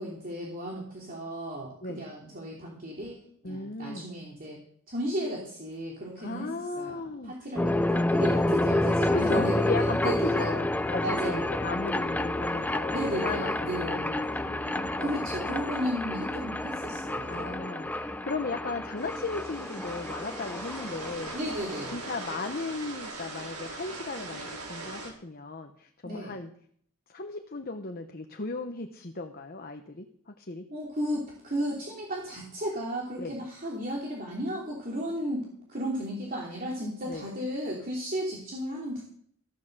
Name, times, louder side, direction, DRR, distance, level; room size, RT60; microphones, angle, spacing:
voice 1, 0.0-4.6 4.9-6.5 6.8-10.5 11.0-11.5 12.9-14.1 15.0-17.6 21.3-22.0 26.0-26.3 30.7-39.0, equal, 40° right, -3 dB, 3.1 m, -34 dB
voice 2, 3.4-4.1 6.2-7.3 9.1-15.4 17.3-21.3 21.9-26.5 27.1-30.6 33.2-33.4 37.1-37.3, left 3 dB, 45° left, 5 dB, 1.0 m, -36 dB
sound 1, 7.6-22.5, left 1 dB, 5° left, 0.5 m, -29 dB
sound 2, 19.0-25.1, right 3 dB, 85° right, 4.5 m, -41 dB
14.5 x 9.1 x 6.8 m, 0.63 s
head